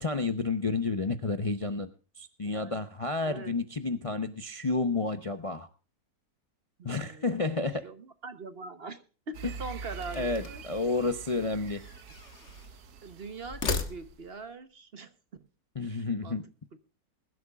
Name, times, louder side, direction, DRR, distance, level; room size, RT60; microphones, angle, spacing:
voice 1, 0.0-1.9 2.2-5.7 6.8-7.9 10.2-11.8 15.8-16.4, left 3 dB, 30° left, 9 dB, 0.6 m, -30 dB
voice 2, 2.4-2.8 3.2-3.5 6.8-7.6 7.8-10.6 13.0-15.1 15.8-16.4 16.7-16.8, right 3 dB, 45° right, 11 dB, 1.1 m, -43 dB
sound 1, 9.3-14.3, right 6 dB, 90° right, 1.5 m, -45 dB
sound 2, 10.0-10.8 11.7-12.7 13.4-14.4, left 4 dB, 50° left, 1.6 m, -36 dB
21.5 x 12.0 x 2.3 m, 0.36 s
omnidirectional pair, 1.6 m